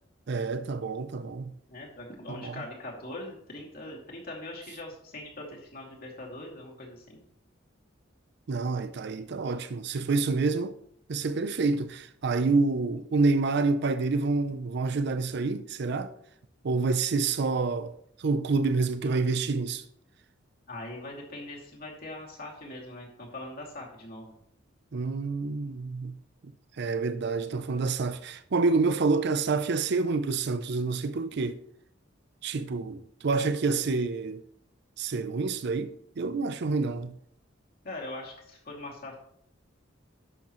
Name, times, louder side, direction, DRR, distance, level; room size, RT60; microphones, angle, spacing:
voice 1, 0.3-1.5 2.3-2.6 8.5-10.8 11.1-16.1 16.6-17.9 18.2-19.8 24.9-26.2 26.8-31.6 32.4-34.4 35.0-37.2, right 3 dB, 60° right, 0.5 m, -28 dB
voice 2, 1.7-7.2 20.7-24.3 37.8-39.2, left 1 dB, 50° left, 2.5 m, -41 dB
11.0 x 7.3 x 3.1 m
head